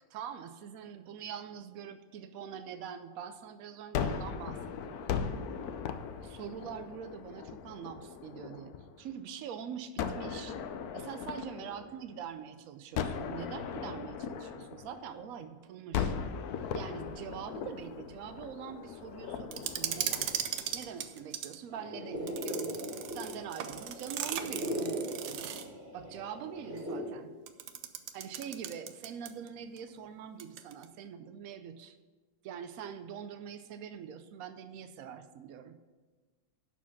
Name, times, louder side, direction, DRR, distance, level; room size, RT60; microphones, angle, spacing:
voice 1, 0.0-5.0 6.2-8.7 9.0-10.6 10.9-16.1 16.7-20.3 20.7-22.8 23.1-25.5 25.9-27.3 28.1-32.0 32.4-35.8, right 8 dB, 85° right, 10 dB, 0.7 m, -44 dB
Gunshot gunfire, 3.9-9.1 10.0-12.4 13.0-15.4 15.9-21.1, left 7 dB, 70° left, 0.9 m, -38 dB
sound 1, 19.5-21.6 22.3-25.8 27.5-29.5 29.8-29.9 30.4-30.9, right 10 dB, 70° right, 1.1 m, -38 dB
sound 2, 21.7-27.0, equal, 35° right, 2.6 m, -39 dB
11.5 x 4.5 x 7.1 m, 1.3 s
omnidirectional pair, 2.1 m